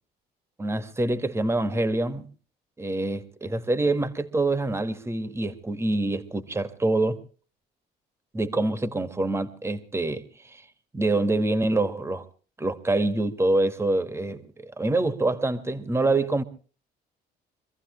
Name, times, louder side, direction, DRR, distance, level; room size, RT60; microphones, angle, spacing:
voice 1, 0.6-2.3 2.8-7.2 8.3-10.7 10.9-12.2 12.6-16.4, right 2 dB, 15° right, 1.9 m, -26 dB
25.5 x 15.0 x 3.2 m
cardioid pair, 110°, 17 cm